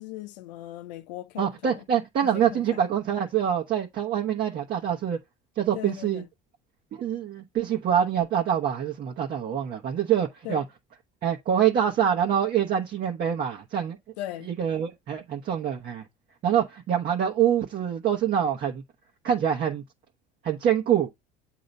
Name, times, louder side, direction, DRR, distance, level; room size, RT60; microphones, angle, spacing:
voice 1, 0.0-1.8 2.3-2.8 5.7-6.3 10.4-10.6 14.2-14.5, left 14 dB, 90° left, 0.6 m, -38 dB
voice 2, 1.4-5.2 5.6-6.2 6.9-10.6 11.2-14.0 14.4-16.0 16.4-18.8 19.2-19.8 20.4-21.1, right 9 dB, 50° right, 1.2 m, -25 dB
7.7 x 2.9 x 5.3 m
supercardioid pair, 90°, 21 cm